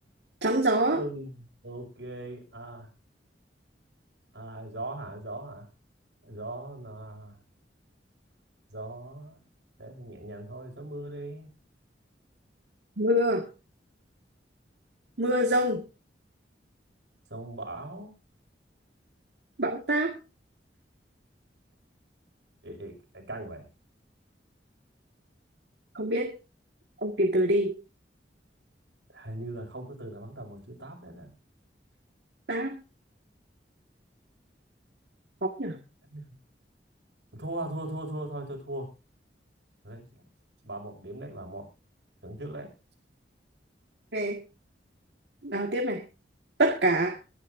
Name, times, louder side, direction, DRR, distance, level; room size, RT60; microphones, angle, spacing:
voice 1, 0.4-1.0 13.0-13.5 15.2-15.8 19.6-20.1 26.0-26.3 27.0-27.8 32.5-32.8 35.4-35.8 44.1-44.4 45.4-46.0 46.6-47.2, right 1 dB, 70° right, 2 dB, 1.9 m, -25 dB
voice 2, 0.9-2.9 4.3-5.7 6.2-7.4 8.7-9.4 9.8-11.5 17.3-18.1 22.6-23.6 29.1-31.3 36.1-36.2 37.3-38.9 39.8-40.0 40.6-41.7 42.2-42.7, right 1 dB, 85° right, 2 dB, 6.2 m, -39 dB
23.0 x 11.0 x 2.7 m, 0.29 s
head